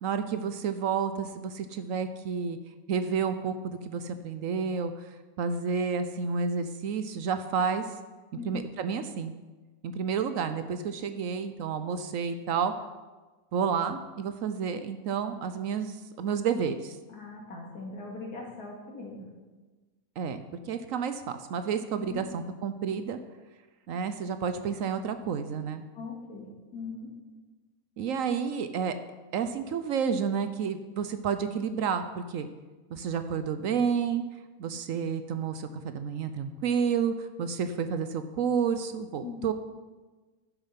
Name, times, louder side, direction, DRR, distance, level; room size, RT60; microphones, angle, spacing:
voice 1, 0.0-2.6 2.9-5.1 5.4-7.8 8.5-9.3 9.8-12.7 13.5-17.0 20.2-23.2 23.9-25.8 28.0-28.9 29.3-32.5 32.9-34.2 34.6-39.5, right 6 dB, 65° right, 10 dB, 1.0 m, -30 dB
voice 2, 17.1-19.3 22.0-22.3 25.9-27.1 39.2-39.4, left 4 dB, 85° left, -1 dB, 2.7 m, -40 dB
11.0 x 7.0 x 5.7 m, 1.2 s
omnidirectional pair, 1.6 m